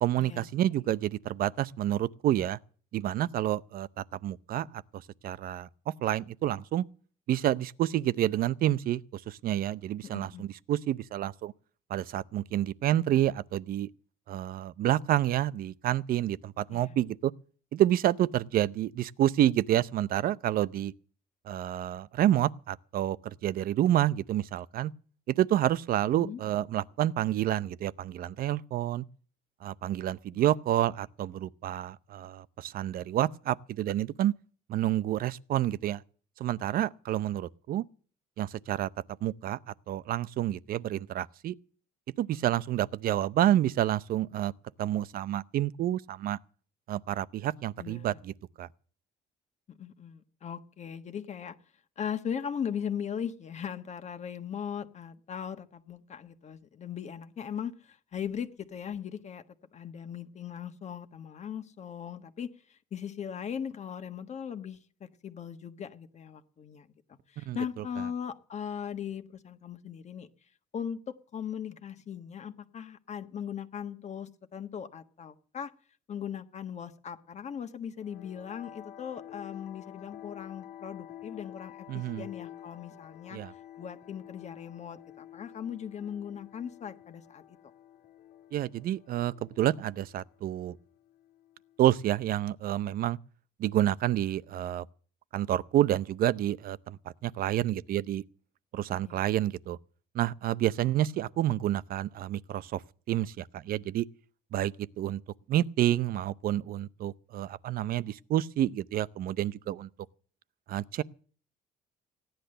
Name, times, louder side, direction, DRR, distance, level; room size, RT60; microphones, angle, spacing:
voice 1, 0.0-2.6 2.9-6.8 7.3-11.5 11.9-13.9 14.3-17.3 17.7-20.9 21.4-24.9 25.3-29.0 29.6-34.3 34.7-36.0 36.4-37.8 38.4-38.9 39.2-41.6 42.2-44.5 44.8-46.4 46.9-48.7 67.4-67.8 81.9-82.3 83.3-83.5 88.5-90.8 91.8-93.2 93.6-94.9 95.3-98.2 98.7-99.8 100.1-102.8 103.1-104.1 104.5-105.2 105.5-109.9 110.7-111.0, right 12 dB, 60° right, 0.6 m, -29 dB
voice 2, 10.0-10.5 16.7-16.9 26.2-26.4 30.3-30.4 47.8-48.2 49.7-51.6 52.0-59.4 59.7-66.9 67.3-70.3 70.7-75.7 76.1-87.4 99.0-99.2, left 8 dB, 40° left, 1.3 m, -39 dB
sound 1, 78.0-92.1, left 12 dB, 80° left, 1.8 m, -50 dB
16.5 x 10.5 x 6.6 m
cardioid pair, 110°, 17 cm